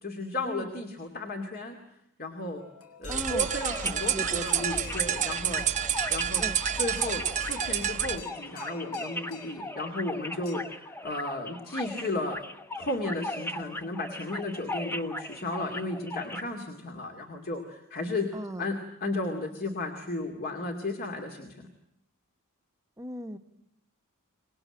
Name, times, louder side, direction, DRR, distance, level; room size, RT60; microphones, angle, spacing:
voice 1, 0.0-1.8 2.2-2.6 3.0-5.7 6.1-6.5 6.8-12.4 12.7-18.3 18.6-21.7, left 2 dB, 45° left, 4 dB, 2.4 m, -34 dB
sound 1, 2.6-10.6, left 4 dB, 70° left, 3.8 m, -48 dB
sound 2, 3.0-8.2, right 9 dB, 35° right, 0.9 m, -29 dB
voice 2, 3.1-3.5 4.1-4.6 6.4-6.5 18.3-18.7 23.0-23.4, right 1 dB, 15° right, 8 dB, 1.2 m, -37 dB
sound 3, 3.3-16.4, left 1 dB, 10° left, 1.0 m, -38 dB
25.0 x 20.0 x 8.9 m, 0.76 s
head